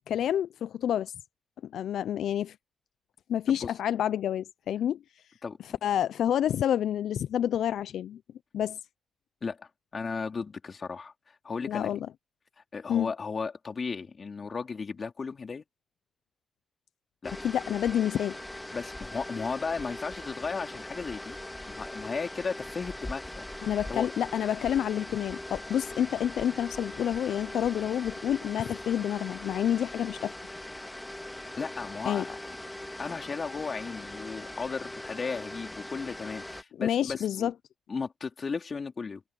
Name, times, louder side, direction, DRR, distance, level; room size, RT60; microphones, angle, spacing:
voice 1, 0.1-1.2 1.7-2.6 3.3-5.2 5.6-8.2 8.5-8.8 11.7-12.0 12.9-13.1 17.4-18.4 23.6-30.3 32.1-32.2 36.8-37.5, left 10 dB, 80° left, 0.4 m, -28 dB
voice 2, 9.4-11.1 11.4-12.0 12.7-15.6 17.2-17.3 18.7-21.4 21.7-24.1 31.6-32.4 33.0-37.5 37.9-39.2, left 5 dB, 50° left, 3.7 m, -35 dB
sound 1, 17.2-36.6, left 1 dB, 15° left, 1.8 m, -41 dB
supercardioid pair, 55°, 0 cm